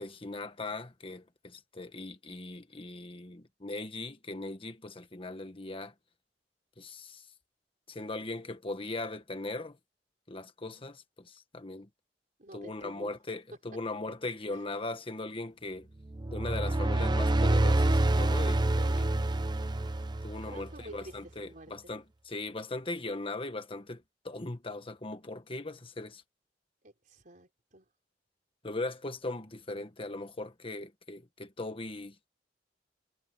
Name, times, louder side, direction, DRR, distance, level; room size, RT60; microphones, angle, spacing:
voice 1, 0.0-5.9 6.8-7.2 7.9-9.8 10.3-11.9 12.5-15.9 16.3-18.6 19.0-19.1 20.2-26.2 28.6-32.1, left 2 dB, 30° left, 1.5 m, -39 dB
voice 2, 12.4-13.2 14.5-14.7 18.8-19.4 20.4-21.9 26.8-27.9, right 1 dB, 50° right, 5.1 m, -50 dB
sound 1, 16.1-20.8, right 2 dB, 25° right, 0.7 m, -27 dB
head